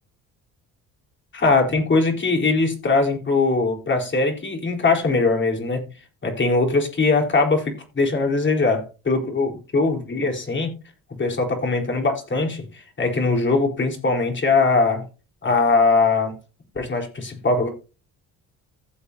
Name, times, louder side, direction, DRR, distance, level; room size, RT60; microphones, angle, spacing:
voice 1, 1.3-5.8 6.2-10.7 11.2-15.0 15.4-16.3 16.7-17.7, left 3 dB, 35° left, 3 dB, 4.2 m, -21 dB
15.5 x 7.0 x 2.9 m, 0.31 s
cardioid pair, 90°, 35 cm